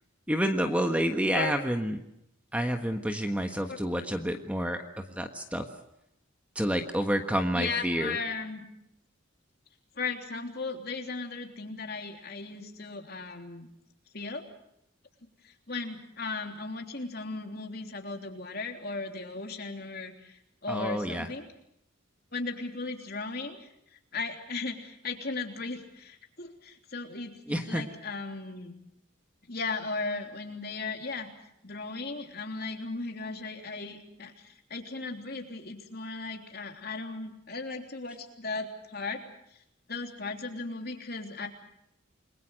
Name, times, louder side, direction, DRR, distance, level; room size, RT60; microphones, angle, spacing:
voice 1, 0.3-2.0 2.5-5.7 6.5-8.2 20.7-21.3 27.5-27.8, equal, 5° right, 5 dB, 1.4 m, -29 dB
voice 2, 7.5-8.7 10.0-13.7 14.1-14.4 15.4-21.5 22.3-28.7 29.5-31.3 31.6-39.2 39.5-39.6 39.9-41.5, left 3 dB, 50° left, 3 dB, 3.4 m, -36 dB
29.0 x 22.0 x 6.5 m, 0.80 s
head